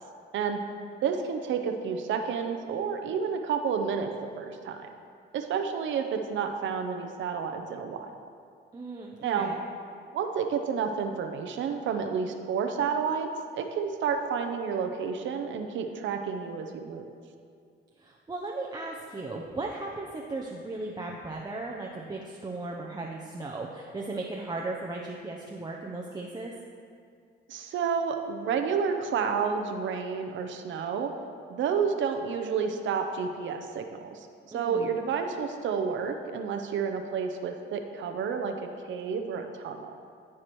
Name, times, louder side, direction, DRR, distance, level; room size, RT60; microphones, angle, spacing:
voice 1, 1.0-4.9 5.3-8.1 9.2-9.5 10.1-13.3 13.5-17.1 27.5-31.1 31.5-34.3 34.5-38.5 38.8-39.9, right 6 dB, 70° right, 5 dB, 0.7 m, -30 dB
voice 2, 8.7-9.6 18.0-26.5 34.5-35.0, right 2 dB, 20° right, -2 dB, 0.7 m, -36 dB
14.0 x 4.8 x 3.0 m, 2.3 s
cardioid pair, 90°, 20 cm